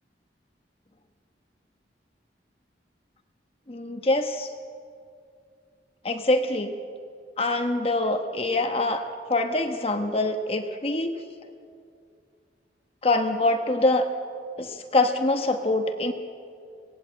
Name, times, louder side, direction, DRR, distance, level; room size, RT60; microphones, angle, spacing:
voice 1, 3.7-4.5 6.0-6.8 7.4-11.2 13.0-14.1 14.6-16.1, left 2 dB, 30° left, 6 dB, 1.1 m, -24 dB
25.0 x 18.5 x 7.9 m, 2.4 s
head